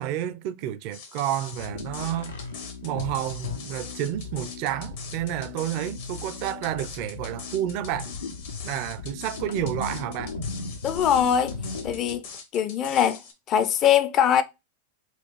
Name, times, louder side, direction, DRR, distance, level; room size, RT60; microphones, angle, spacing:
voice 1, 0.0-2.4 2.8-8.1 8.6-10.3, right 12 dB, 50° right, 0.4 m, -30 dB
sound 1, 0.9-13.3, left 5 dB, 65° left, 1.2 m, -42 dB
sound 2, 1.5-12.2, left 4 dB, 85° left, 0.7 m, -37 dB
voice 2, 10.8-11.6 11.8-12.3 12.5-13.2 13.5-14.4, left 9 dB, 35° left, 0.5 m, -22 dB
4.3 x 2.3 x 3.1 m
hypercardioid pair, 95°, 0 cm